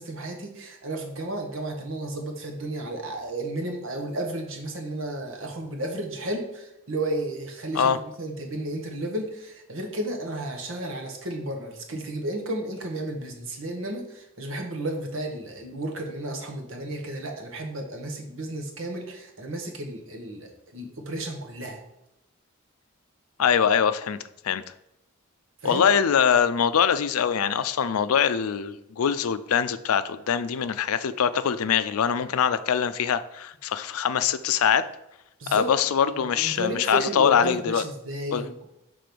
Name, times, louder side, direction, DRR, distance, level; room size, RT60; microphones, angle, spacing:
voice 1, 0.0-21.8 25.6-25.9 35.4-35.7 36.1-38.6, right 1 dB, 70° right, 3 dB, 1.2 m, -33 dB
voice 2, 23.4-24.2 24.4-24.6 25.6-34.9 35.5-37.8 38.3-38.4, left 7 dB, 90° left, 13 dB, 0.4 m, -23 dB
6.0 x 3.8 x 5.1 m, 0.86 s
head